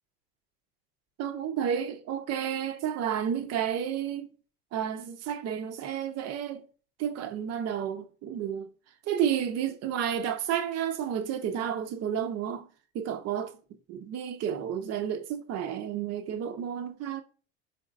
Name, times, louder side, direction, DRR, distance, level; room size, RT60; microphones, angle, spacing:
voice 1, 1.2-4.3 4.7-6.7 7.0-8.7 9.1-12.7 12.9-13.5 13.9-17.2, right 9 dB, 50° right, 0.9 m, -31 dB
5.1 x 3.9 x 2.5 m
supercardioid pair, 95°, 32 cm